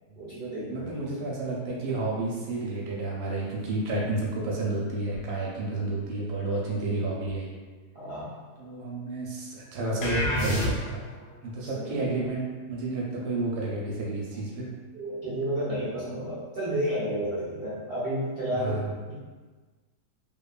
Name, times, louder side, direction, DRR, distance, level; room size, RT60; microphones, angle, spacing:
voice 1, 0.2-1.1 7.9-8.3 11.7-12.1 14.9-19.1, right 1 dB, 50° right, -12 dB, 0.7 m, -31 dB
voice 2, 0.7-7.5 8.6-11.0 11.4-14.7 18.6-18.9, right 2 dB, 75° right, -3 dB, 1.0 m, -31 dB
sound 1, 10.0-11.2, left 1 dB, 75° left, 1.0 m, -27 dB
2.8 x 2.2 x 2.3 m, 1.4 s
omnidirectional pair, 1.7 m